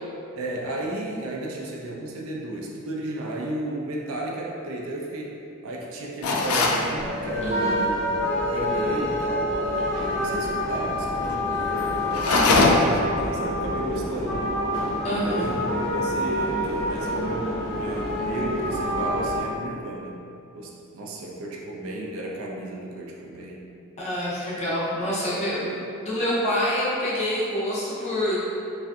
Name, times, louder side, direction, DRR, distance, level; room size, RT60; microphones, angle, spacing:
voice 1, 0.3-5.4 5.6-8.0 8.4-9.5 10.0-14.6 15.2-20.2 20.5-23.6 24.6-24.7, right 1 dB, 75° right, -2 dB, 0.4 m, -33 dB
sound 1, 6.2-6.9 12.1-13.0, left 3 dB, 85° left, 0.3 m, -20 dB
sound 2, 6.9-19.4, equal, 65° left, 0.9 m, -27 dB
voice 2, 7.4-7.8 15.0-15.5 24.0-28.4, equal, 30° left, -7 dB, 0.5 m, -27 dB
2.5 x 2.4 x 2.3 m, 2.6 s
head